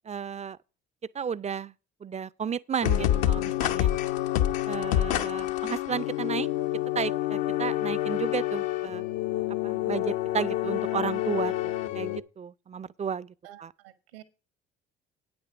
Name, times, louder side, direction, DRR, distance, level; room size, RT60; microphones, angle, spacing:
voice 1, 0.0-0.6 1.1-1.7 2.0-3.9 4.7-6.5 6.9-9.1 9.6-13.3 13.6-13.7, right 7 dB, 25° right, 0.5 m, -33 dB
sound 1, 2.8-12.2, left 13 dB, 70° left, 1.0 m, -28 dB
voice 2, 13.4-14.2, right 14 dB, 80° right, 1.5 m, -49 dB
9.1 x 8.7 x 4.8 m
hypercardioid pair, 55°, 29 cm